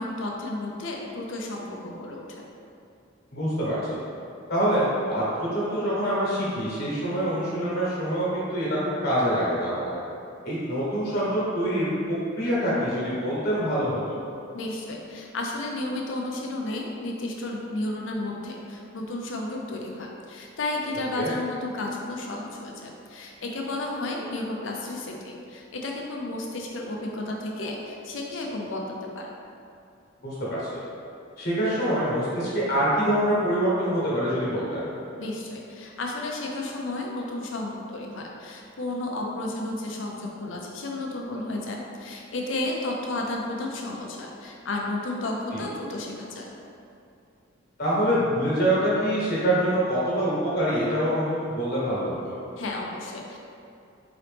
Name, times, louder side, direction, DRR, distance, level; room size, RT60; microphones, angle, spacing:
voice 1, 0.0-2.5 14.5-29.3 35.2-46.5 52.6-53.4, left 2 dB, 65° left, 0 dB, 0.5 m, -32 dB
voice 2, 3.3-4.0 4.5-10.0 10.4-14.0 21.2-21.3 30.2-30.8 31.4-34.8 45.5-45.6 47.8-52.4, equal, 50° left, -7 dB, 1.2 m, -25 dB
3.9 x 3.0 x 3.3 m, 2.6 s
head